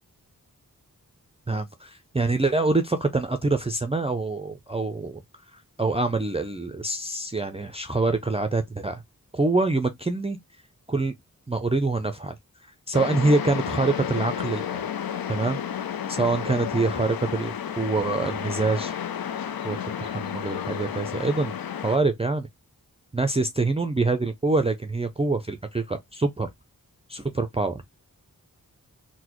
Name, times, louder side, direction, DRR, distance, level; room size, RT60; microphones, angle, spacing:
voice 1, 1.5-5.2 5.5-9.0 9.3-10.4 10.9-11.1 11.5-12.3 12.9-14.9 15.3-15.6 16.1-18.9 19.6-21.5 21.8-22.5 23.1-26.5 27.1-27.8, right 3 dB, 15° right, 0.4 m, -25 dB
sound 1, 12.9-22.0, left 9 dB, 75° left, 0.5 m, -32 dB
3.8 x 2.1 x 3.0 m
cardioid pair, 45°, 36 cm